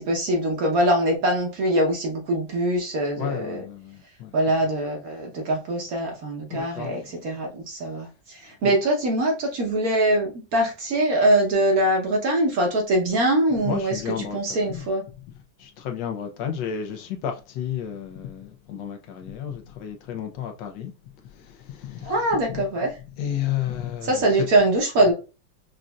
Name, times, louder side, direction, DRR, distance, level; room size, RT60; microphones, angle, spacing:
voice 1, 0.0-3.6 4.3-14.0 14.3-15.0 22.0-22.9 24.1-25.1, right 1 dB, 60° right, 1.1 m, -23 dB
voice 2, 3.1-4.4 6.5-7.2 8.4-8.7 13.6-15.2 15.6-20.9 21.2-22.6 22.9-24.5, left 9 dB, 75° left, 1.3 m, -32 dB
5.0 x 2.5 x 2.2 m
omnidirectional pair, 2.1 m